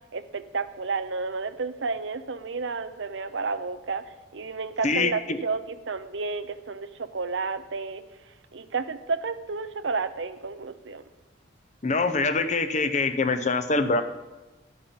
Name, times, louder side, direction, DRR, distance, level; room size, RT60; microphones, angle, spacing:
voice 1, 0.1-4.0 4.3-8.0 8.5-11.0, right 4 dB, 65° right, 11 dB, 0.7 m, -31 dB
voice 2, 4.8-5.4 11.8-14.0, left 3 dB, 35° left, 10 dB, 0.7 m, -24 dB
11.5 x 9.5 x 5.8 m, 1.1 s
head